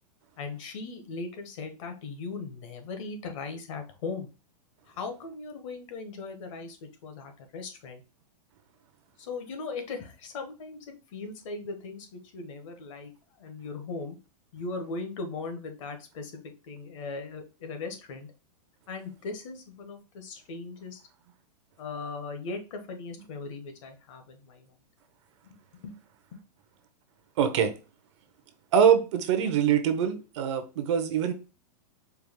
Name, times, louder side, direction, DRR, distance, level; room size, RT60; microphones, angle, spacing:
voice 1, 0.4-4.3 4.9-8.0 9.2-10.8 11.1-13.1 13.4-14.1 14.5-18.3 18.9-21.0 21.8-24.7 25.4-25.5 25.8-25.9, left 4 dB, 50° left, 1.1 m, -38 dB
voice 2, 27.4-27.7 28.7-31.3, right 8 dB, 45° right, 0.6 m, -23 dB
4.6 x 2.4 x 3.5 m
supercardioid pair, 165°, 21 cm